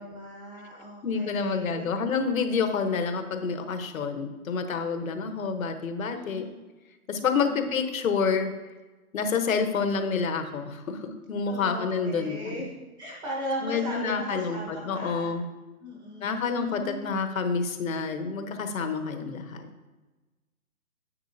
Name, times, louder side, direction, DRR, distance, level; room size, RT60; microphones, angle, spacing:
voice 1, 0.0-1.9 6.1-6.5 7.2-7.7 11.5-12.7 13.0-15.3 15.8-17.0, equal, 10° right, -4 dB, 1.4 m, -37 dB
voice 2, 1.0-6.4 7.1-8.5 9.1-12.6 13.6-15.4 16.2-19.7, left 5 dB, 65° left, 6 dB, 1.2 m, -28 dB
9.9 x 7.8 x 2.8 m, 1.2 s
hypercardioid pair, 155°, 44 cm